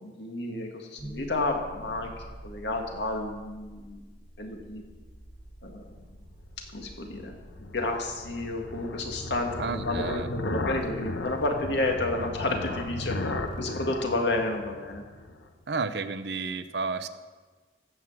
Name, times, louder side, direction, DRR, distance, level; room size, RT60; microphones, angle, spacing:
voice 1, 0.0-2.1 2.4-4.0 4.4-4.8 5.6-5.9 6.7-15.0, left 2 dB, 70° left, 2 dB, 1.9 m, -31 dB
sound 1, 1.0-13.0, right 1 dB, 30° left, 2.5 m, -49 dB
sound 2, 5.9-15.5, left 2 dB, 85° left, 1.0 m, -36 dB
voice 2, 9.6-10.3 15.7-17.1, right 4 dB, 65° right, 11 dB, 0.7 m, -31 dB
15.0 x 6.1 x 7.3 m, 1.3 s
head